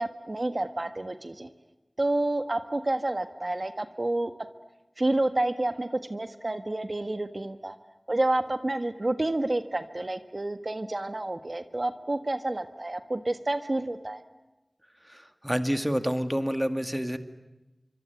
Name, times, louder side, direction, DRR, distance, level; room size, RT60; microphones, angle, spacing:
voice 1, 0.0-1.5 2.0-4.3 5.0-7.8 8.1-14.2, right 2 dB, 55° right, 9 dB, 1.5 m, -29 dB
voice 2, 15.1-17.2, equal, 10° right, 8 dB, 2.1 m, -28 dB
26.0 x 24.5 x 9.3 m, 1.0 s
wide cardioid pair, 40°, 0 cm